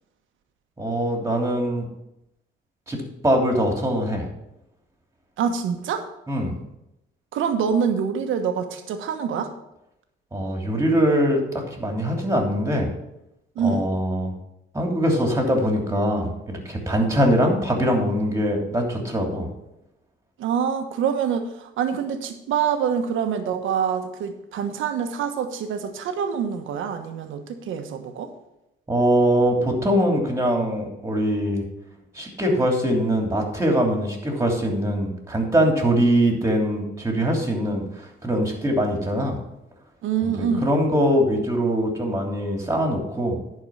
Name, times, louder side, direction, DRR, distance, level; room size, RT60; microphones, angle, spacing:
voice 1, 0.8-1.9 2.9-4.3 6.3-6.5 10.3-12.9 13.6-14.3 14.7-19.5 28.9-31.6 32.1-37.8 38.2-39.4 40.2-43.4, equal, 15° right, 1 dB, 3.0 m, -22 dB
voice 2, 5.4-6.1 7.3-9.5 13.5-13.9 20.4-28.3 40.0-40.7, right 7 dB, 85° right, 6 dB, 1.3 m, -25 dB
11.0 x 4.8 x 7.1 m, 0.86 s
cardioid pair, 90°, 20 cm